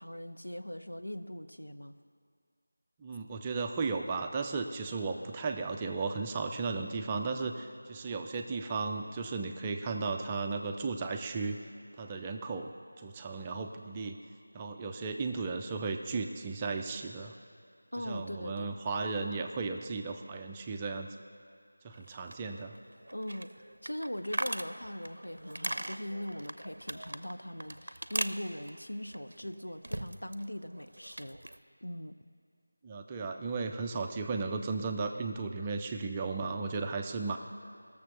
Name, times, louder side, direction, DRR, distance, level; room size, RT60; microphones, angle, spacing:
voice 1, 0.0-1.9 17.9-18.8 22.1-22.2 23.1-31.4 31.8-32.2, equal, 80° left, 8 dB, 0.7 m, -40 dB
voice 2, 3.0-11.6 12.0-14.2 14.5-17.3 18.1-21.1 21.8-22.7 32.8-37.4, right 4 dB, 15° right, 4 dB, 0.4 m, -35 dB
sound 1, 21.9-30.5 30.7-31.6, right 1 dB, 60° right, 0.6 m, -40 dB
15.5 x 6.9 x 6.5 m, 2.3 s
figure-of-eight pair, 170°, 0 cm